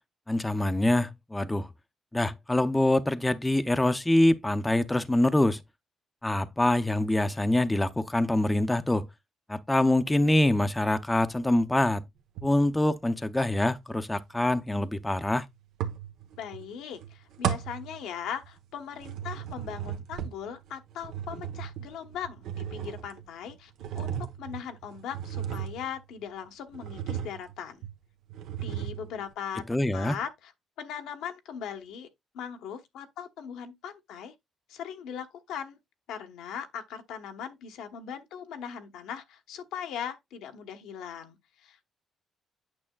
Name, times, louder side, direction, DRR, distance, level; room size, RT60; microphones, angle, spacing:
voice 1, 0.3-1.7 2.1-5.6 6.2-9.1 9.5-12.0 12.4-15.5 29.7-30.2, left 1 dB, 10° left, 0.6 m, -25 dB
sound 1, 12.4-12.8 15.8-16.7 16.9-18.6 18.9-26.2 26.7-27.6 27.8-28.0 28.3-29.3, right 9 dB, 85° right, 1.0 m, -36 dB
voice 2, 16.4-27.8 28.6-30.5 30.8-32.1 32.3-34.3 34.7-35.8 36.1-41.8, left 8 dB, 90° left, 1.1 m, -39 dB
8.7 x 6.2 x 2.3 m
cardioid pair, 90°, 0 cm